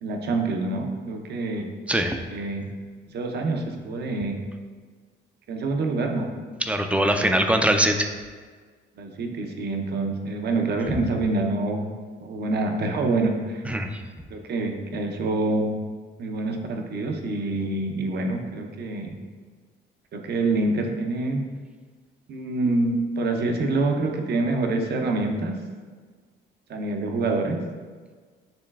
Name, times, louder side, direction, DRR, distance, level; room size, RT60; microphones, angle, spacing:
voice 1, 0.0-1.7 2.3-2.7 3.1-4.4 5.5-6.3 9.0-11.9 12.2-13.6 14.3-15.7 16.2-19.2 20.1-21.5 22.3-25.6 26.7-27.6, right 2 dB, 55° right, 3 dB, 0.7 m, -26 dB
voice 2, 1.9-2.2 6.7-8.1 13.7-13.9, right 1 dB, 5° right, 5 dB, 0.4 m, -22 dB
6.8 x 3.1 x 2.3 m, 1.5 s
cardioid pair, 90°, 20 cm